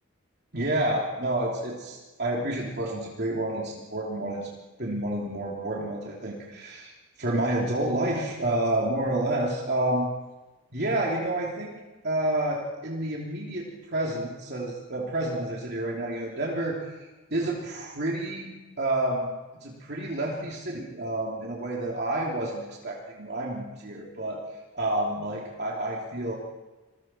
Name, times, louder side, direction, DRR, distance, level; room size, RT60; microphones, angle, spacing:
voice 1, 0.5-4.5 4.8-10.1 10.7-11.8 12.0-19.3 19.6-24.4 24.7-26.3, right 1 dB, 55° right, -3 dB, 3.2 m, -29 dB
27.5 x 22.5 x 4.6 m, 1.1 s
head